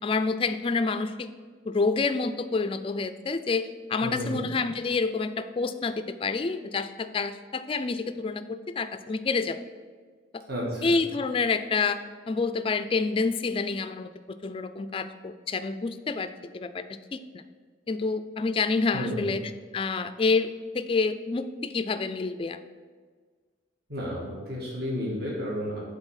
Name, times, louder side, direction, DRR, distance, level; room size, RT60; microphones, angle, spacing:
voice 1, 0.0-1.3 1.7-9.6 10.8-12.0 12.3-16.8 17.1-17.2 17.9-19.4 19.7-22.6, left 4 dB, 30° left, 11 dB, 0.3 m, -28 dB
voice 2, 4.0-4.4 10.5-11.0 18.9-19.4 23.9-25.8, equal, 55° right, -4 dB, 1.7 m, -32 dB
8.0 x 4.0 x 5.6 m, 1.5 s
head